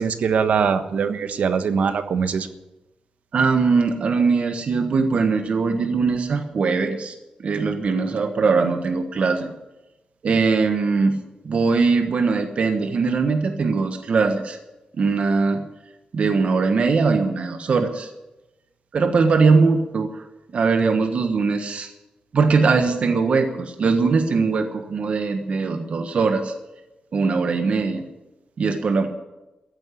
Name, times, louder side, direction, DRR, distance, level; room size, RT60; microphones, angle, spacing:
voice 1, 0.0-2.5, right 6 dB, 75° right, 9 dB, 1.3 m, -22 dB
voice 2, 3.3-7.1 7.4-9.5 10.2-11.1 11.4-14.6 14.9-15.6 16.1-18.1 18.9-20.2 20.5-21.9 22.3-26.5 27.1-28.0 28.6-29.1, right 4 dB, 60° right, 6 dB, 1.3 m, -21 dB
14.5 x 8.9 x 9.9 m, 1.0 s
wide cardioid pair, 130°, 2 cm